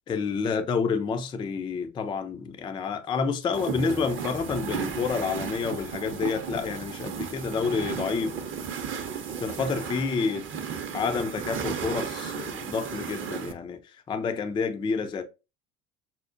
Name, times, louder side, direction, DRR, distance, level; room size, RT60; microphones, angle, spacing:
voice 1, 0.1-8.4 9.4-10.5 10.9-13.8 14.1-15.2, left 5 dB, 15° left, 0.3 m, -29 dB
sound 1, 3.5-13.5, right 6 dB, 30° right, 0.6 m, -34 dB
5.5 x 2.0 x 2.4 m
hypercardioid pair, 75°, 39 cm